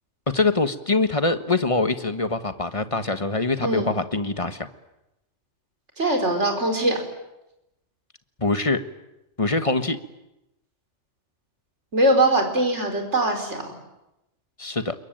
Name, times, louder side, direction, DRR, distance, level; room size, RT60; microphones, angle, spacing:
voice 1, 0.3-4.7 8.4-8.8 9.4-10.0 14.6-14.9, left 3 dB, 25° left, 10 dB, 1.4 m, -23 dB
voice 2, 3.6-4.0 6.0-7.0 11.9-13.7, right 1 dB, 60° right, 4 dB, 5.0 m, -22 dB
28.0 x 22.5 x 9.1 m, 0.90 s
omnidirectional pair, 1.3 m